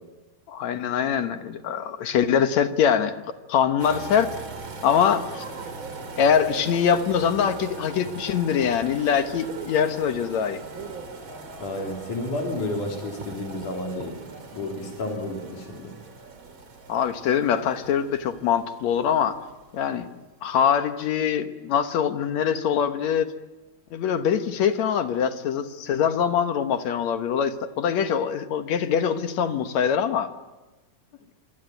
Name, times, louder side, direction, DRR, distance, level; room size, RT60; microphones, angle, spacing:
voice 1, 0.5-3.1 3.5-4.3 4.8-5.4 6.2-10.6 16.9-19.4 19.7-20.1 20.4-23.3 23.9-30.3, left 8 dB, 70° left, 9 dB, 2.4 m, -23 dB
sound 1, 3.8-20.1 20.4-20.6, right 3 dB, 40° right, 3.3 m, -40 dB
voice 2, 11.6-14.2 14.5-15.9, left 1 dB, 85° left, 2 dB, 4.9 m, -31 dB
26.0 x 23.0 x 9.1 m, 1.1 s
omnidirectional pair, 3.5 m